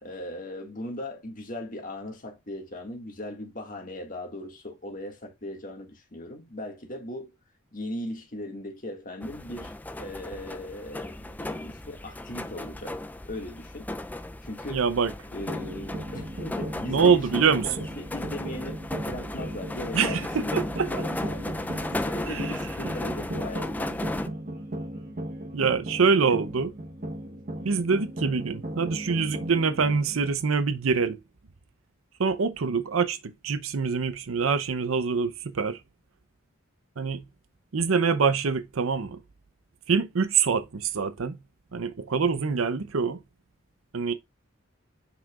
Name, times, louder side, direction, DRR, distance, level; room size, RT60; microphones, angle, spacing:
voice 1, 0.0-7.3 7.7-13.0 13.3-13.9 14.4-14.9 15.3-20.6 20.8-21.7 22.0-24.0, left 1 dB, 40° left, 1.8 m, -38 dB
sound 1, 9.2-24.3, left 1 dB, 10° left, 0.3 m, -35 dB
voice 2, 14.7-15.1 16.9-17.7 19.9-20.9 22.3-22.5 25.5-26.7 27.6-31.2 32.2-35.8 37.0-37.2 37.7-39.2 39.9-41.4 41.7-43.2 43.9-44.1, right 5 dB, 85° right, 0.6 m, -25 dB
sound 2, 15.4-30.3, right 1 dB, 40° right, 1.3 m, -37 dB
7.4 x 6.0 x 2.4 m
head